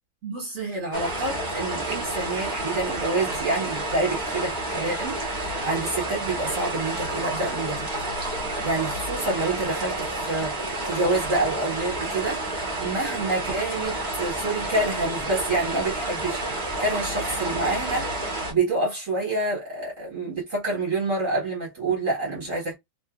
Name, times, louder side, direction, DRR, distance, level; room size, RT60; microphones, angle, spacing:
voice 1, 0.2-7.9 8.6-22.7, right 2 dB, 45° right, 1.7 m, -28 dB
sound 1, 0.9-18.5, right 2 dB, 30° right, 1.2 m, -30 dB
3.6 x 2.6 x 2.4 m
omnidirectional pair, 2.1 m